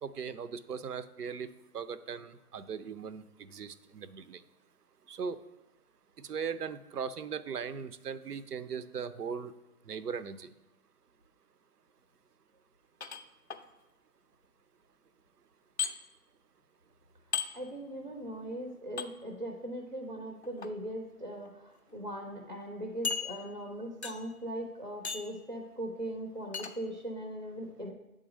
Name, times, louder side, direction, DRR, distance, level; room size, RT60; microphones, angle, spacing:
voice 1, 0.0-4.4 5.1-5.4 6.2-9.5 9.9-10.5, right 6 dB, 90° right, 12 dB, 0.6 m, -39 dB
sound 1, 13.0-13.6 15.8-15.9 17.3-17.5 19.0-19.1 20.4-20.7 21.4-21.5 21.9-22.0 23.0-23.7 24.0-24.4 25.0-25.4 26.5-26.7, left 6 dB, 50° left, 0.4 m, -35 dB
voice 2, 17.5-27.9, right 1 dB, 35° right, 2 dB, 0.4 m, -40 dB
7.9 x 3.8 x 5.1 m, 1.0 s
figure-of-eight pair, 155°, 45 cm